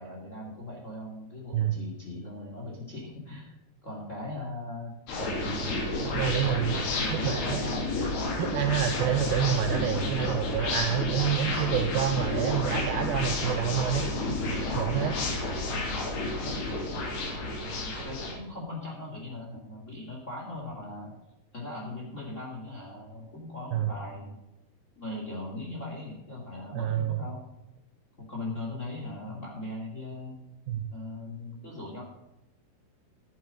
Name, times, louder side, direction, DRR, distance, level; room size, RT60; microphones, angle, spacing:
voice 1, 0.0-4.9 6.0-6.6 7.0-8.0 15.7-16.1 17.6-21.1 21.5-24.4 25.0-27.4 28.2-30.4 30.9-32.0, left 2 dB, 25° left, -2 dB, 1.9 m, -39 dB
sound 1, 5.1-18.3, left 2 dB, 70° left, 4.6 m, -31 dB
voice 2, 6.2-6.8 7.1-7.6 8.4-14.0 14.7-15.2 23.7-23.9 26.7-27.2 30.7-30.9, right 10 dB, 85° right, 7 dB, 2.1 m, -28 dB
11.0 x 9.6 x 5.2 m, 0.94 s
omnidirectional pair, 4.9 m